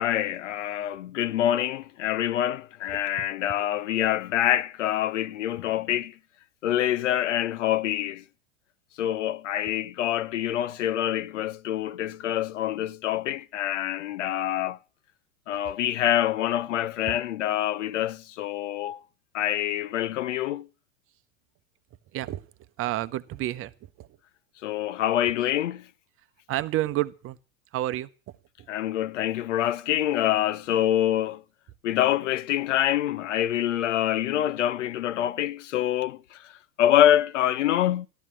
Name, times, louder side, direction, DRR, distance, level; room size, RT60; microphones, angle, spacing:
voice 1, 0.0-6.1 6.6-8.2 9.0-14.8 15.5-19.0 19.3-20.7 24.6-25.9 28.7-31.4 31.8-36.5 36.8-38.1, left 12 dB, 70° left, 0.8 m, -26 dB
voice 2, 22.8-23.7 24.0-24.1 26.5-27.4 27.7-28.1, right 15 dB, 35° right, 0.9 m, -29 dB
14.0 x 12.5 x 6.1 m
hypercardioid pair, 95°, 39 cm